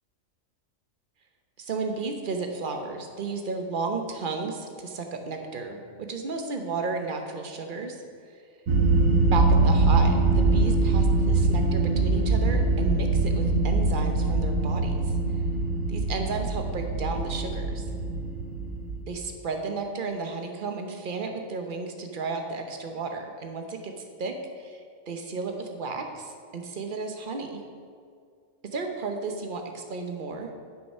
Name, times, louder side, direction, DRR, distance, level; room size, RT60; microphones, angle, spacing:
voice 1, 1.6-8.0 9.3-14.9 15.9-17.8 19.1-23.9 24.2-24.3 25.1-27.6 28.7-30.5, right 4 dB, 45° right, 4 dB, 0.9 m, -33 dB
sound 1, 8.7-19.0, right 3 dB, 75° right, 1.3 m, -23 dB
8.0 x 6.6 x 5.5 m, 2.1 s
omnidirectional pair, 1.4 m